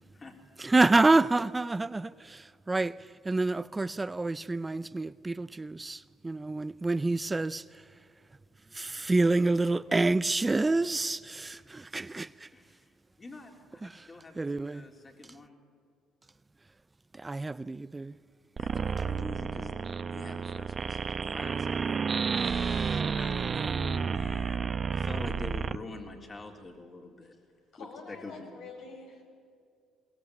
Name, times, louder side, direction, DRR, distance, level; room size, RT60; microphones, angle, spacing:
voice 1, 0.6-7.8 8.7-12.5 13.8-14.1 14.4-14.9 17.1-18.2, right 2 dB, 20° right, 0.5 m, -28 dB
voice 2, 12.5-12.9 13.2-15.6 18.6-19.8 20.1-27.4 27.8-28.6, left 3 dB, 30° left, 3.6 m, -46 dB
sound 1, 18.6-25.8, right 5 dB, 40° right, 0.9 m, -31 dB
voice 3, 27.7-29.2, left 4 dB, 75° left, 5.9 m, -46 dB
22.5 x 19.0 x 8.6 m
supercardioid pair, 80°, 0 cm